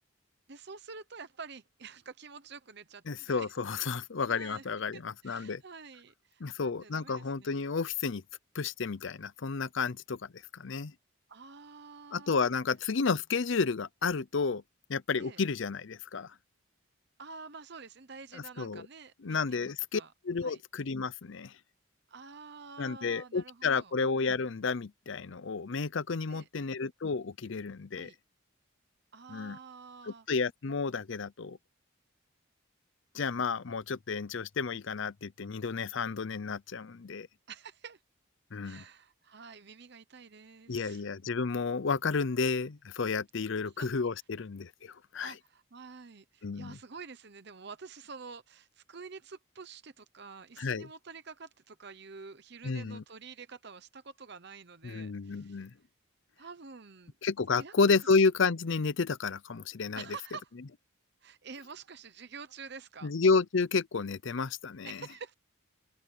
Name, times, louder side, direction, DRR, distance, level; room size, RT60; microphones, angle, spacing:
voice 1, 0.5-3.5 4.3-4.7 4.9-7.6 11.3-12.5 15.1-15.4 17.2-20.1 20.4-20.6 22.1-23.9 26.3-26.7 27.9-28.2 29.1-30.3 37.5-38.0 38.6-41.0 43.6-43.9 45.2-55.7 56.4-57.1 57.5-57.7 60.0-60.5 61.2-63.1 64.8-65.3, right 5 dB, 50° right, 0.9 m, -48 dB
voice 2, 3.1-5.6 6.4-8.2 8.5-10.9 12.1-14.6 14.9-16.3 18.3-18.9 19.2-21.5 22.8-28.1 29.3-29.6 30.0-31.6 33.1-37.3 38.5-38.8 40.7-45.3 46.4-46.8 50.6-50.9 52.6-53.0 54.8-55.7 57.2-60.0 63.0-65.0, left 4 dB, 60° left, 0.6 m, -31 dB
open air
head